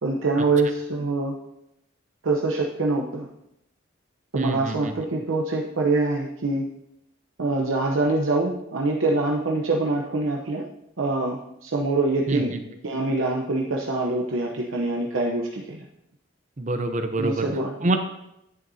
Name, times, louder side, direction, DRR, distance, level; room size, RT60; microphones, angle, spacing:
voice 1, 0.0-1.4 2.2-3.3 4.3-6.7 7.4-10.7 11.0-15.8 17.2-17.9, right 2 dB, 80° right, -1 dB, 0.9 m, -25 dB
voice 2, 4.4-4.9 12.3-12.4 16.6-17.4 17.8-18.0, right 2 dB, 35° right, 6 dB, 0.7 m, -25 dB
10.5 x 9.0 x 2.7 m, 0.82 s
head